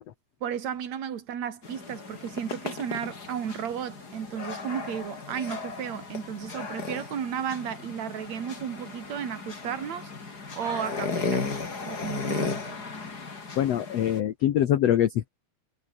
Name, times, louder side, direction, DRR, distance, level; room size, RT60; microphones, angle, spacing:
voice 1, 0.4-11.5 11.8-12.7, right 8 dB, 50° right, 3.4 m, -34 dB
sound 1, 1.6-14.2, left 4 dB, 25° left, 3.1 m, -35 dB
voice 2, 13.6-15.3, left 11 dB, 80° left, 1.5 m, -24 dB
omnidirectional pair, 4.6 m